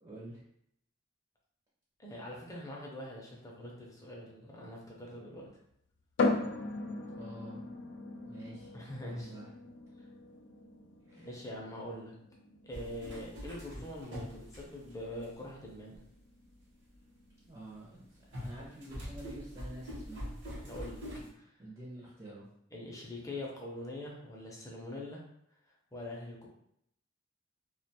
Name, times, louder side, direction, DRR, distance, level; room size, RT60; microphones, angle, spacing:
voice 1, 0.0-0.4 7.2-7.6 8.2-8.7 9.0-9.5 11.1-11.3 17.5-20.3 21.2-22.4, right 1 dB, 25° right, -7 dB, 0.6 m, -48 dB
voice 2, 2.0-5.5 8.7-9.3 10.0-10.1 11.2-12.1 12.6-16.0 20.6-21.0 21.3-21.6 22.7-25.2 25.9-26.5, left 1 dB, 15° left, -3 dB, 0.5 m, -43 dB
sound 1, 6.2-19.7, left 3 dB, 70° left, 0.3 m, -40 dB
sound 2, 12.7-15.2 15.9-16.0 18.3-21.3, equal, 60° right, 0.8 m, -43 dB
2.4 x 2.2 x 2.7 m, 0.74 s
head